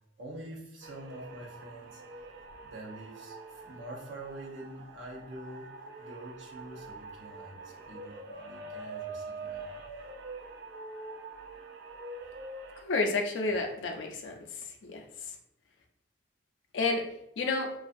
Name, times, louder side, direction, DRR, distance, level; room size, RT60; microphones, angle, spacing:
voice 1, 0.2-2.0 2.6-5.7 6.0-9.8, right 1 dB, 70° right, -2 dB, 0.7 m, -46 dB
sound 1, 0.8-12.8, right 3 dB, 55° right, 0.3 m, -45 dB
voice 2, 12.8-14.3 14.8-15.0 16.7-17.0 17.4-17.7, left 3 dB, 70° left, 3 dB, 0.4 m, -30 dB
2.3 x 2.3 x 2.6 m, 0.79 s
head